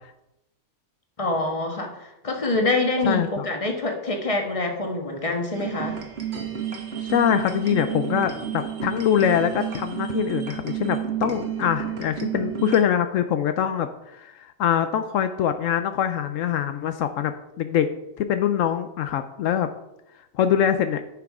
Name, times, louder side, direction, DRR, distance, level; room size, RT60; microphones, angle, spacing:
voice 1, 1.2-6.0, left 2 dB, 25° left, 2 dB, 1.5 m, -26 dB
voice 2, 3.0-3.4 7.0-17.9 18.2-19.7 20.3-21.0, left 9 dB, 80° left, 9 dB, 1.0 m, -24 dB
sound 1, 5.5-12.8, right 9 dB, 55° right, 1.4 m, -31 dB
10.5 x 6.0 x 4.9 m, 0.88 s
omnidirectional pair, 1.4 m